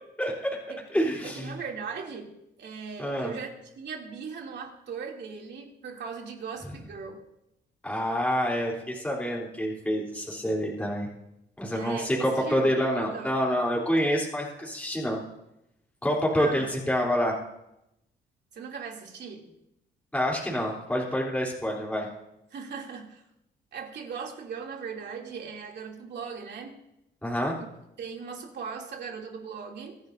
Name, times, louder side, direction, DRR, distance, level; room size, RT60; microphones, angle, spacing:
voice 1, 0.2-0.6 0.9-1.5 3.0-3.3 7.8-11.1 11.6-15.2 16.0-17.4 20.1-22.1 27.2-27.5, equal, 5° left, -3 dB, 3.5 m, -27 dB
voice 2, 1.2-2.3 2.6-7.2 11.7-13.4 16.4-16.8 18.5-19.5 22.5-23.2 23.7-26.8 28.0-30.0, right 6 dB, 60° right, 0 dB, 2.8 m, -39 dB
24.0 x 10.5 x 2.7 m, 0.86 s
cardioid pair, 90°, 20 cm